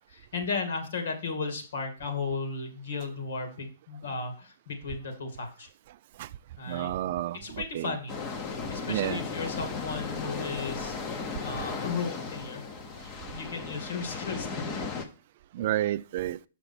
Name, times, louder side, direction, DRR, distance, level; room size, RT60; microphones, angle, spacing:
voice 1, 0.0-5.7 6.6-6.9 7.3-12.7 13.3-14.9, left 4 dB, 65° left, 2.1 m, -35 dB
voice 2, 6.7-7.4 7.7-8.0 8.9-9.2 15.5-16.4, right 13 dB, 40° right, 0.3 m, -30 dB
sound 1, 8.1-15.0, left 4 dB, 20° left, 0.8 m, -36 dB
6.7 x 5.9 x 4.3 m
hypercardioid pair, 165°, 0 cm